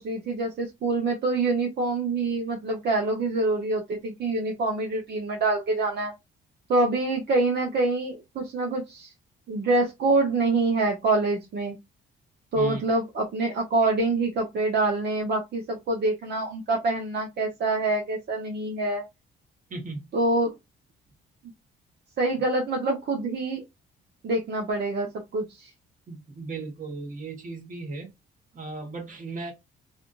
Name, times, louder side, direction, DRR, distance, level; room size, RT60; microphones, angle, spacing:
voice 1, 0.0-6.1 6.7-9.1 9.5-11.8 12.5-19.0 20.1-20.5 22.2-23.6 24.2-25.1 25.3-25.7, right 2 dB, 60° right, 1.0 m, -26 dB
voice 2, 19.7-20.1 26.1-28.1 28.5-29.5, right 3 dB, 40° right, 1.6 m, -36 dB
3.4 x 2.6 x 2.5 m
cardioid pair, 90°, 20 cm